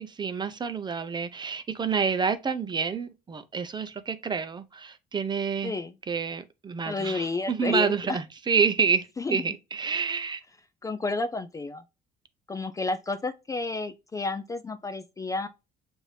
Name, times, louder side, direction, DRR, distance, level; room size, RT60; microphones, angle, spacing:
voice 1, 0.0-5.7 6.1-10.4, right 5 dB, 25° right, 0.6 m, -28 dB
voice 2, 5.6-5.9 6.9-8.2 9.2-9.4 10.8-11.8 12.5-15.5, left 3 dB, 20° left, 0.4 m, -31 dB
6.4 x 2.6 x 3.2 m
cardioid pair, 110°, 17 cm